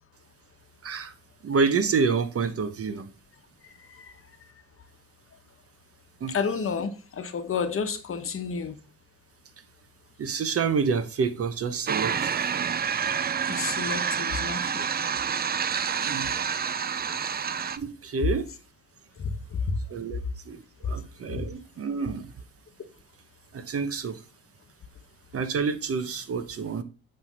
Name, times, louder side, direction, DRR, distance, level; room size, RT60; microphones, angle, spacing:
voice 1, 0.8-1.1 1.4-3.1 6.2-6.3 10.2-12.5 16.0-16.3 17.8-18.4 19.9-20.2 20.4-22.3 23.5-24.2 25.3-26.8, right 5 dB, 50° right, 1.1 m, -28 dB
voice 2, 6.3-8.7 13.2-14.9 19.2-19.7, left 5 dB, 45° left, 1.1 m, -31 dB
sound 1, 11.9-17.8, right 7 dB, 30° right, 0.5 m, -28 dB
9.1 x 3.4 x 5.3 m
cardioid pair, 90°, 30 cm